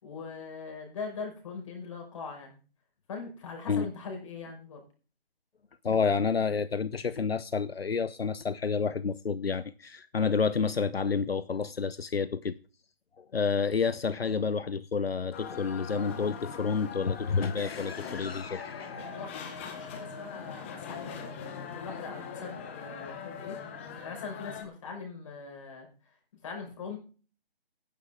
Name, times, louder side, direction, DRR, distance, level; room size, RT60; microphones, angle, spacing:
voice 1, 0.0-2.6 3.1-4.8 19.1-21.3 21.6-23.6 24.0-25.9 26.4-27.0, left 5 dB, 30° left, 5.7 m, -41 dB
voice 2, 5.8-12.6 13.2-19.1, left 5 dB, 75° left, 0.8 m, -29 dB
sound 1, 15.3-24.6, left 6 dB, 15° left, 1.0 m, -41 dB
15.0 x 10.5 x 3.8 m
figure-of-eight pair, 160°, 31 cm